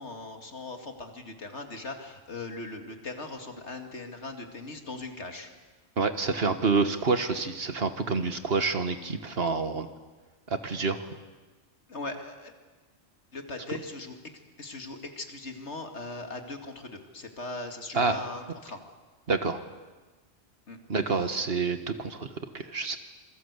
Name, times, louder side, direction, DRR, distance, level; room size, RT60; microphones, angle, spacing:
voice 1, 0.0-5.5 11.9-12.5 13.3-14.2 14.6-18.8 20.7-20.8 21.1-21.4, left 2 dB, 70° left, 5 dB, 2.7 m, -39 dB
voice 2, 6.0-9.9 10.5-11.0 17.9-18.2 19.3-19.6 20.9-23.0, right 4 dB, 55° right, 9 dB, 1.7 m, -28 dB
27.0 x 22.0 x 8.3 m, 1.3 s
omnidirectional pair, 1.2 m